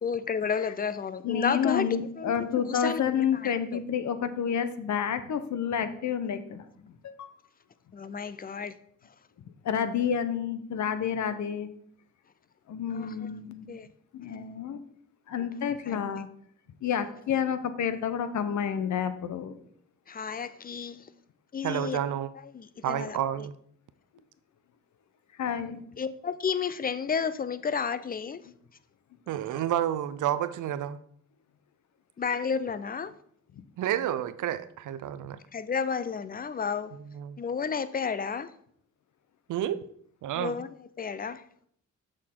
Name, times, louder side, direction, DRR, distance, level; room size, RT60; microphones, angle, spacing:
voice 1, 0.0-3.1 3.4-3.8 7.9-8.7 12.9-13.4 13.7-13.9 15.9-16.2 20.1-21.0 21.5-22.0 22.5-23.2 26.0-28.4 32.2-33.1 35.5-36.9 37.4-38.5 40.4-40.7 41.0-41.4, left 6 dB, 30° left, 14 dB, 0.4 m, -31 dB
voice 2, 1.2-7.3 9.6-11.7 12.7-13.7 14.1-14.8 15.3-16.3 16.8-19.6 25.4-25.8, left 8 dB, 65° left, 11 dB, 0.8 m, -29 dB
voice 3, 21.6-22.3 22.8-23.5 29.3-31.0 33.8-35.4 37.0-37.4 39.5-39.8 40.2-40.6, right 11 dB, 70° right, 14 dB, 0.5 m, -30 dB
6.5 x 6.2 x 3.7 m, 0.65 s
cardioid pair, 100°, 31 cm